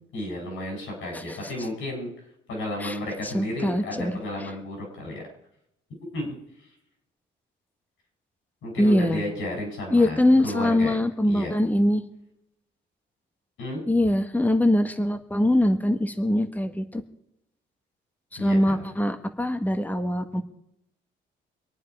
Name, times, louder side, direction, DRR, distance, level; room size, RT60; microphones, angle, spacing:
voice 1, 0.1-2.1 2.5-5.2 6.1-6.4 8.6-11.0 11.3-11.5 13.6-13.8 18.4-18.8, left 1 dB, 80° left, 0 dB, 7.5 m, -32 dB
voice 2, 3.2-4.1 8.8-9.2 9.9-12.0 13.9-17.0 18.3-20.4, left 1 dB, 10° left, 6 dB, 1.5 m, -23 dB
25.5 x 9.2 x 4.9 m, 0.80 s
cardioid pair, 90°, 20 cm